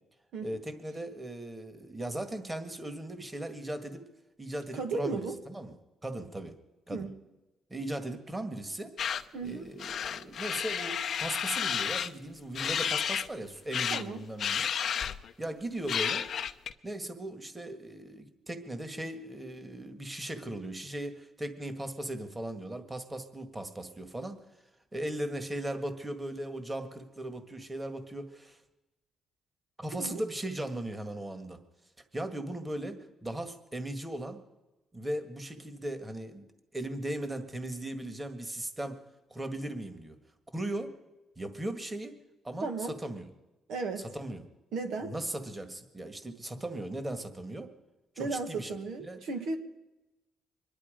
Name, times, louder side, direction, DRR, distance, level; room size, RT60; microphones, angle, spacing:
voice 1, 0.4-4.0 4.4-5.7 6.0-6.5 6.9-7.1 7.7-8.9 9.4-14.7 15.4-16.3 16.8-24.4 24.9-28.6 29.8-31.6 32.1-34.4 34.9-36.4 36.7-39.0 39.3-40.2 40.5-40.9 41.4-42.1 42.4-43.2 44.1-44.4 45.0-47.7 48.1-48.7 49.0-49.2, right 1 dB, 15° right, 8 dB, 1.8 m, -38 dB
voice 2, 4.7-5.4 6.9-7.2 9.3-9.6 13.9-14.2 29.9-30.3 42.6-42.9 43.7-44.1 44.7-45.1 48.2-49.6, right 4 dB, 80° right, 5 dB, 1.7 m, -35 dB
sound 1, 9.0-9.2 9.8-12.1 12.5-13.3 13.7-14.0 14.4-15.3 15.9-16.7, left 8 dB, 60° left, 0.7 m, -31 dB
24.5 x 11.0 x 5.1 m, 1.0 s
cardioid pair, 90°, 0 cm